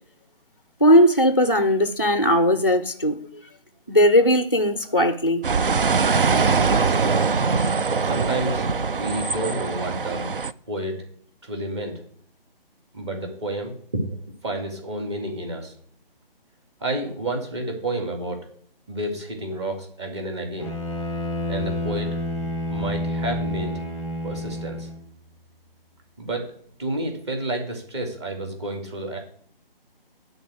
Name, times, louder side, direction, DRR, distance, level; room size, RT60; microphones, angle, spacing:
voice 1, 0.8-3.2 3.9-5.4 8.0-8.1, equal, 25° left, 0.4 m, -18 dB
sound 1, 5.4-10.5, right 4 dB, 65° right, 0.6 m, -22 dB
voice 2, 6.5-7.2 8.0-8.7 8.9-10.3 10.7-11.0 11.4-12.0 12.9-14.2 14.4-15.7 16.8-18.5 18.9-20.7 21.5-23.8 24.2-24.9 26.2-26.5 26.8-29.2, right 1 dB, 30° right, 2.2 m, -30 dB
Bowed string instrument, 20.6-25.0, left 1 dB, 5° right, 1.2 m, -29 dB
10.5 x 4.0 x 7.5 m
figure-of-eight pair, 150°, 30 cm